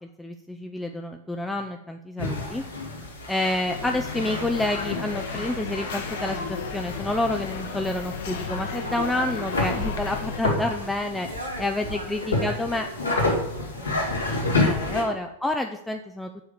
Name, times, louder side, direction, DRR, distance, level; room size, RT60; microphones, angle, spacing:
voice 1, 0.0-2.6 3.3-11.3 11.6-12.9 14.6-16.4, left 1 dB, 5° left, 4 dB, 0.5 m, -29 dB
sound 1, 2.2-15.0, left 2 dB, 75° left, 2.2 m, -30 dB
sound 2, 3.7-10.4, left 5 dB, 60° left, 1.3 m, -34 dB
voice 2, 11.0-14.0 14.3-15.0, right 1 dB, 85° right, -3 dB, 2.1 m, -40 dB
7.0 x 4.9 x 6.8 m, 0.79 s
figure-of-eight pair, 90°, 0 cm